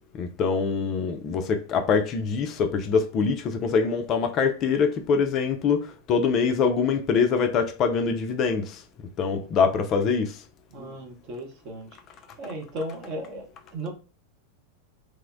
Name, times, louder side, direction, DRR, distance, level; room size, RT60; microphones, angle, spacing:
voice 1, 0.2-8.8 9.2-10.3, left 5 dB, 35° left, 0.3 m, -24 dB
voice 2, 10.7-11.9 12.4-13.5 13.7-13.9, right 1 dB, 40° right, 0.7 m, -35 dB
3.0 x 2.0 x 2.4 m
figure-of-eight pair, 90°, 0 cm